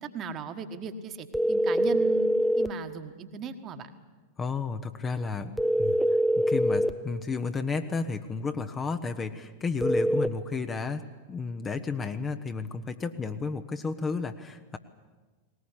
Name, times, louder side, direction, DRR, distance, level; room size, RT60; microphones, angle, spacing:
voice 1, 0.0-3.9, right 4 dB, 30° right, 8 dB, 1.5 m, -37 dB
sound 1, 1.3-2.7 5.6-7.0 9.8-10.3, equal, ahead, 0.7 m, -24 dB
voice 2, 4.4-6.0 6.4-14.8, left 4 dB, 20° left, 8 dB, 1.0 m, -32 dB
19.5 x 19.5 x 9.9 m, 1.3 s
figure-of-eight pair, 90°, 0 cm